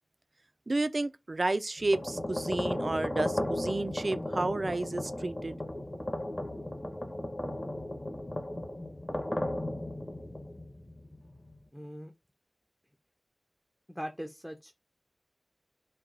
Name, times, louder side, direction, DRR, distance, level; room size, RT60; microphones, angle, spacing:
voice 1, 0.7-5.6, right 2 dB, 50° right, 0.4 m, -31 dB
sound 1, 1.8-11.6, left 1 dB, 30° left, 0.9 m, -35 dB
voice 2, 11.7-12.1 13.9-14.7, equal, ahead, 0.5 m, -40 dB
4.6 x 2.2 x 3.7 m
wide cardioid pair, 65°, 0 cm